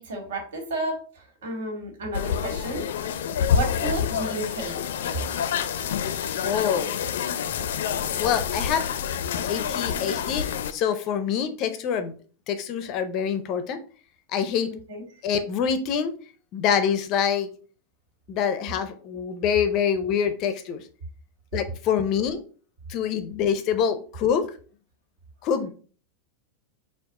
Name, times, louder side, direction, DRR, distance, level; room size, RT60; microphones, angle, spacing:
voice 1, 0.0-2.8 3.5-4.8 14.9-15.0, right 2 dB, 80° right, 2 dB, 1.9 m, -32 dB
sound 1, 2.1-10.7, left 7 dB, 90° left, 0.4 m, -27 dB
voice 2, 6.4-7.0 8.2-8.9 9.5-10.5 10.7-12.1 12.5-13.8 14.3-14.7 15.2-16.1 16.5-17.5 18.3-20.8 21.5-22.4 22.9-24.5 25.4-25.7, left 7 dB, 30° left, 10 dB, 0.4 m, -25 dB
4.6 x 2.4 x 4.7 m, 0.41 s
supercardioid pair, 180°, 0 cm